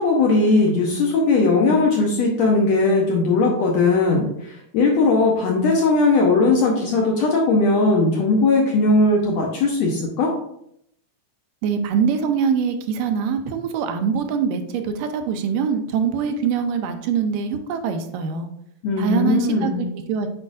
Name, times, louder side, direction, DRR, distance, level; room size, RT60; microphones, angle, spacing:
voice 1, 0.0-10.3 18.8-19.8, left 3 dB, 70° left, -1 dB, 1.7 m, -18 dB
voice 2, 11.6-18.5 19.0-20.3, right 6 dB, 85° right, 6 dB, 2.2 m, -23 dB
8.4 x 4.8 x 2.5 m, 0.73 s
omnidirectional pair, 3.9 m